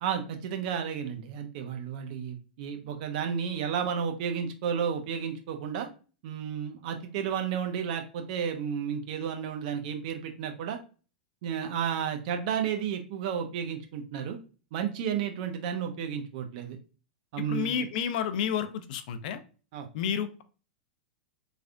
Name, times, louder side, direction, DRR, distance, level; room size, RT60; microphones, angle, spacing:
voice 1, 0.0-5.9 6.2-10.8 11.4-14.4 14.7-16.8 17.3-17.8 19.7-19.9, right 8 dB, 55° right, 5 dB, 0.7 m, -32 dB
voice 2, 17.4-19.4 19.9-20.4, left 8 dB, 60° left, 10 dB, 0.4 m, -30 dB
3.3 x 2.4 x 2.5 m, 0.36 s
hypercardioid pair, 105°, 5 cm